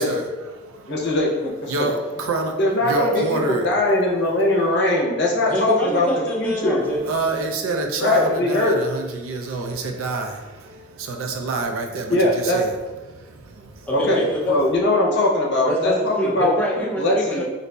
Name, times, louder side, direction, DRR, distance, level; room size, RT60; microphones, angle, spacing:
voice 1, 0.0-1.1 1.6-3.7 6.8-12.8 13.1-13.9, right 3 dB, 75° right, 3 dB, 0.4 m, -28 dB
voice 2, 0.9-1.9 2.6-6.1 6.4-6.8 8.0-8.7 12.1-12.6 13.9-16.5 17.0-17.4, left 1 dB, 55° left, -3 dB, 0.7 m, -20 dB
voice 3, 5.5-7.0 13.9-14.6 15.7-17.4, equal, 5° left, -4 dB, 0.5 m, -25 dB
3.9 x 2.6 x 2.2 m, 1.2 s
head